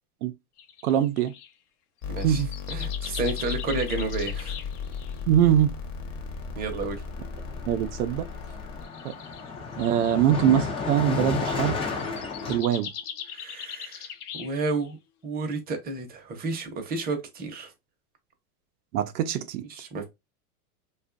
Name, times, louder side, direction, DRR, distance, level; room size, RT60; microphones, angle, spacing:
sound 1, 0.6-1.5 2.0-5.2 6.8-6.9 7.7-8.1 8.8-10.2 11.1-11.4 11.8-14.9, left 9 dB, 85° left, 0.7 m, -40 dB
voice 1, 0.8-1.3 2.2-2.5 5.3-5.7 7.7-8.3 9.0-9.1 9.8-11.8 12.5-12.9 18.9-19.9, right 10 dB, 85° right, 0.6 m, -23 dB
sound 2, 2.0-8.9, left 6 dB, 40° left, 0.8 m, -35 dB
voice 2, 2.1-2.4 2.7-4.6 6.5-7.0 13.3-15.0 15.2-17.7 19.7-20.0, right 3 dB, 20° right, 0.7 m, -31 dB
Car passing by, 5.1-5.3 5.6-12.6, left 4 dB, 15° left, 0.4 m, -33 dB
2.5 x 2.4 x 2.4 m
hypercardioid pair, 120°, 44 cm